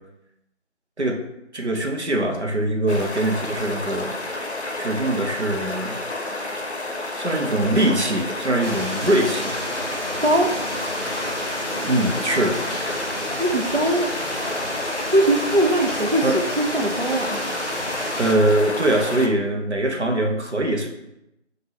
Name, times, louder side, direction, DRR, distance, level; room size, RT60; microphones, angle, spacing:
voice 1, 1.5-4.1 4.8-6.0 7.2-9.5 11.8-12.6 16.2-16.4 18.2-20.9, right 1 dB, 65° right, 2 dB, 0.9 m, -22 dB
sound 1, 2.9-19.3, left 2 dB, 65° left, 0.7 m, -30 dB
sound 2, 8.6-18.3, equal, 35° left, 1.2 m, -31 dB
voice 2, 10.2-10.5 13.4-14.1 15.1-17.4, right 1 dB, 50° right, 3 dB, 0.4 m, -21 dB
5.7 x 2.6 x 3.0 m, 0.87 s
figure-of-eight pair, 180°, 36 cm